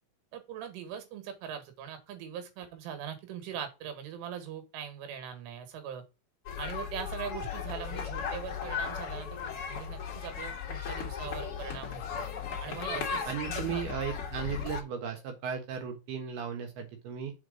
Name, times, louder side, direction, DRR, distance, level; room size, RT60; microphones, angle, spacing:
voice 1, 0.3-6.0 6.6-9.4 9.7-12.3 12.6-13.9, right 8 dB, 80° right, 4.1 m, -41 dB
sound 1, 6.4-14.8, left 7 dB, 85° left, 1.3 m, -36 dB
voice 2, 13.2-17.3, right 7 dB, 65° right, 2.8 m, -36 dB
7.3 x 4.5 x 5.1 m
omnidirectional pair, 5.5 m